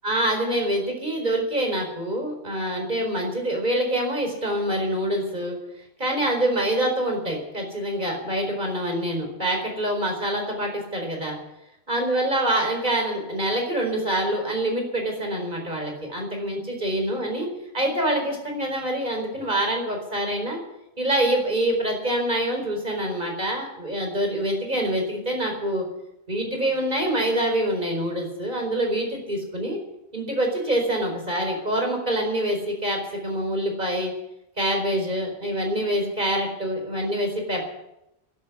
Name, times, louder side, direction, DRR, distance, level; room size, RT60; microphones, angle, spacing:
voice 1, 0.0-5.6 6.0-11.4 11.9-17.5 17.7-20.6 21.0-25.8 26.3-29.8 30.1-34.1 34.6-37.6, right 1 dB, 40° right, 2 dB, 4.7 m, -25 dB
11.5 x 11.5 x 9.8 m, 0.88 s
omnidirectional pair, 1.2 m